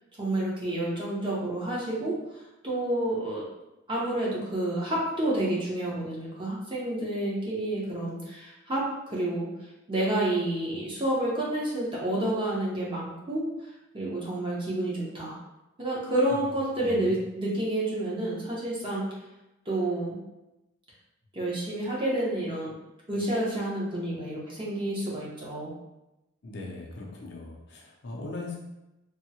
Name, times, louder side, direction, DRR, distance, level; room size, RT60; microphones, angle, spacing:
voice 1, 0.2-3.4 3.9-9.5 9.9-13.5 13.9-15.4 15.8-19.1 19.7-20.2 21.3-22.7 23.1-25.7, right 1 dB, 25° right, -6 dB, 0.8 m, -29 dB
voice 2, 26.4-28.6, left 2 dB, 50° left, -2 dB, 0.5 m, -39 dB
3.5 x 2.1 x 2.7 m, 0.95 s
head